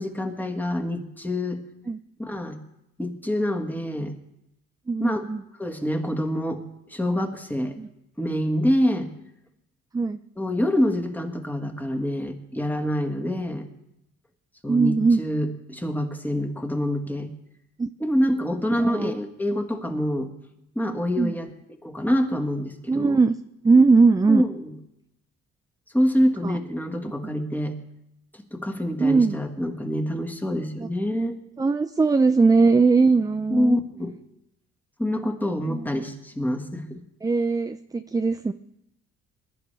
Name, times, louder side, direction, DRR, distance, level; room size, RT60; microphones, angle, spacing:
voice 1, 0.0-1.6 2.2-2.6 3.0-4.1 5.0-5.2 5.6-6.6 6.9-7.8 8.2-9.1 10.4-13.7 14.6-17.3 18.0-20.3 20.8-21.5 21.8-23.2 24.3-24.7 25.9-27.8 28.5-31.4 33.5-34.1 35.0-37.0, equal, 5° left, 2 dB, 1.7 m, -26 dB
voice 2, 4.9-5.4 7.8-7.9 9.9-10.2 14.7-15.2 17.8-17.9 18.8-19.1 21.2-21.3 22.9-23.3 23.6-24.4 26.4-26.6 29.0-29.4 30.8-30.9 31.6-33.7 35.7-36.0 37.2-38.5, right 4 dB, 10° right, 9 dB, 0.4 m, -20 dB
20.5 x 11.0 x 3.4 m, 0.82 s
cardioid pair, 90°, 30 cm